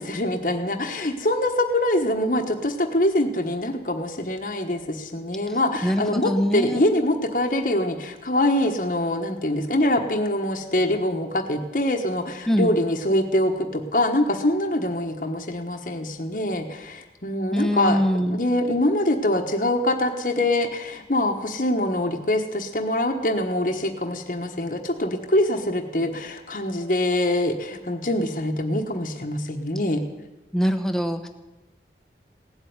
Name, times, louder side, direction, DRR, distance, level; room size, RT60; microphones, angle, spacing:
voice 1, 0.0-30.0, left 1 dB, 50° left, 3 dB, 1.2 m, -24 dB
voice 2, 5.5-6.9 12.5-12.8 17.5-18.4 30.5-31.3, equal, 5° left, 6 dB, 1.0 m, -23 dB
17.0 x 7.9 x 9.6 m, 1.1 s
head